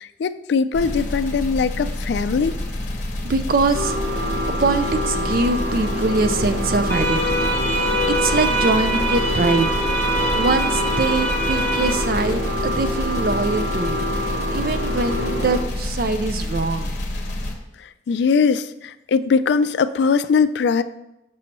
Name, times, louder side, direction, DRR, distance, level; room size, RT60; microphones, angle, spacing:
voice 1, 0.0-2.6 17.8-20.8, left 5 dB, 75° left, 13 dB, 0.3 m, -21 dB
sound 1, 0.7-17.5, left 1 dB, 45° left, 0.9 m, -28 dB
voice 2, 3.2-7.3 7.6-17.0, right 3 dB, 55° right, 9 dB, 0.4 m, -23 dB
sound 2, 3.7-15.6, left 1 dB, 85° right, 1.1 m, -27 dB
sound 3, 6.9-11.9, right 1 dB, 10° left, 0.9 m, -24 dB
7.4 x 6.1 x 3.0 m, 0.90 s
head